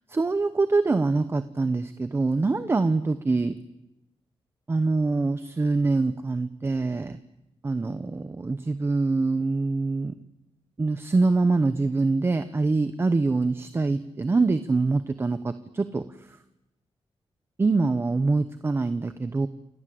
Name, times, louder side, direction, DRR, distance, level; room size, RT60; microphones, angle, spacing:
voice 1, 0.1-3.5 4.7-7.2 7.6-10.1 10.8-16.4 17.6-19.5, right 3 dB, 25° right, 11 dB, 0.9 m, -24 dB
29.0 x 25.0 x 7.8 m, 0.93 s
wide cardioid pair, 180°, 10 cm